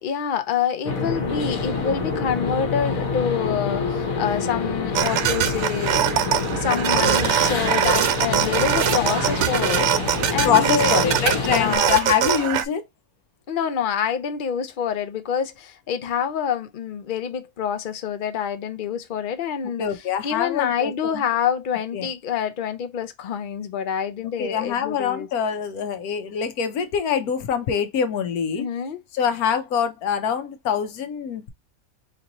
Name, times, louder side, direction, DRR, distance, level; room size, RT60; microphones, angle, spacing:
voice 1, 0.0-6.0 6.5-11.0 11.4-11.9 13.5-19.8 20.2-25.3 28.6-29.0, left 8 dB, 55° left, 0.6 m, -27 dB
sound 1, 0.8-11.8, left 4 dB, 70° left, 1.4 m, -27 dB
sound 2, 4.9-12.6, right 10 dB, 65° right, 0.7 m, -22 dB
voice 2, 10.4-12.8 19.8-21.2 21.9-22.1 24.4-28.7 29.1-31.5, left 8 dB, 90° left, 1.2 m, -24 dB
4.4 x 2.6 x 2.9 m
omnidirectional pair, 1.5 m